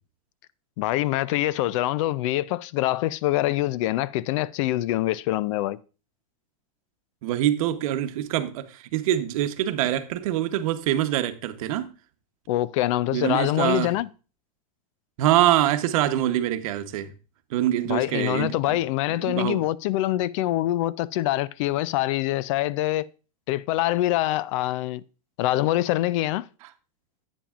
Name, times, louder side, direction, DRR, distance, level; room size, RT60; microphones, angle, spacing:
voice 1, 0.8-5.8 12.5-14.1 17.9-23.1 23.5-25.0 25.4-26.5, left 15 dB, 55° left, 0.4 m, -25 dB
voice 2, 7.2-11.9 13.1-13.9 15.2-17.1 17.5-18.8 19.2-19.6, right 12 dB, 65° right, 0.9 m, -24 dB
10.0 x 8.7 x 2.4 m
supercardioid pair, 130°, 19 cm